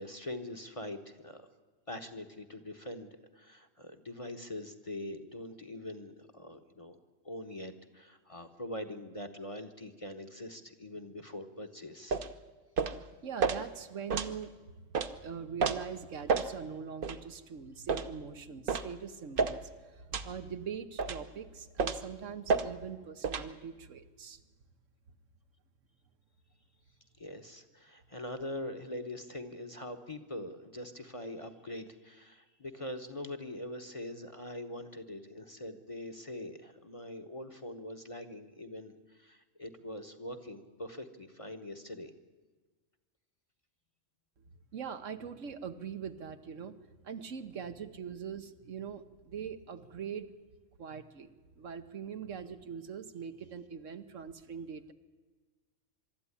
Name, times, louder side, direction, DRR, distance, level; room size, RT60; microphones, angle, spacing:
voice 1, 0.0-1.5 1.9-7.0 7.2-12.2 27.2-42.1, left 1 dB, 25° left, 6 dB, 1.1 m, -43 dB
sound 1, 12.1-12.3 12.8-13.0 13.4-13.6 14.1-14.3 14.9-15.1 15.6-15.8 16.3-16.5 17.0-17.2 17.9-18.1 18.7-18.9 19.4-19.6 20.1-20.3 21.0-21.2 21.8-22.1 22.5-22.7 23.2-23.5, right 5 dB, 45° right, 0.9 m, -30 dB
voice 2, 13.2-14.5 15.2-24.4 44.7-46.7 47.0-50.3 50.8-54.9, right 7 dB, 75° right, 9 dB, 1.3 m, -42 dB
23.5 x 12.5 x 9.9 m, 1.4 s
omnidirectional pair, 1.3 m